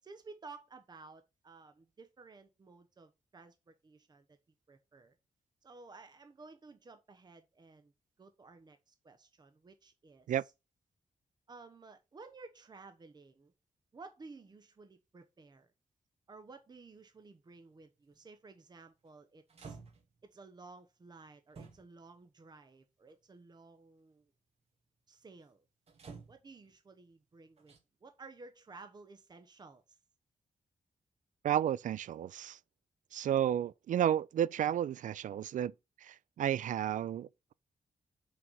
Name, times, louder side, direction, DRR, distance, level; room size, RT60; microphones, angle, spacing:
voice 1, 0.0-4.4 4.7-5.2 5.6-7.9 8.2-10.4 11.5-13.5 13.9-15.7 16.3-19.8 20.2-24.3 25.1-25.6 26.3-30.0, right 3 dB, 30° right, 1.0 m, -54 dB
sound 1, 18.1-18.3 19.1-19.2 19.5-20.3 21.5-22.1 23.1-23.2 25.9-26.7 27.6-27.8, right 5 dB, 50° right, 2.0 m, -51 dB
voice 2, 31.4-32.6 33.1-37.5, right 10 dB, 75° right, 0.4 m, -32 dB
6.2 x 4.6 x 5.4 m
wide cardioid pair, 115°, 13 cm